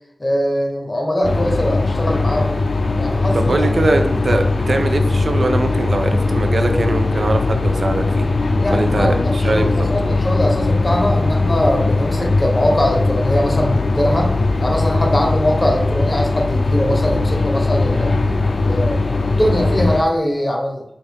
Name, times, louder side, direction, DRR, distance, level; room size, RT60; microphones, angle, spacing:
voice 1, 0.2-2.6 3.0-3.7 8.6-18.1 18.7-19.1 19.4-20.8, equal, 35° left, 0 dB, 1.1 m, -21 dB
sound 1, 1.2-20.0, left 3 dB, 90° left, 0.4 m, -19 dB
voice 2, 3.3-8.3 8.7-9.7, right 2 dB, 75° right, 6 dB, 0.4 m, -21 dB
4.2 x 2.4 x 3.5 m, 0.82 s
wide cardioid pair, 50°, 0 cm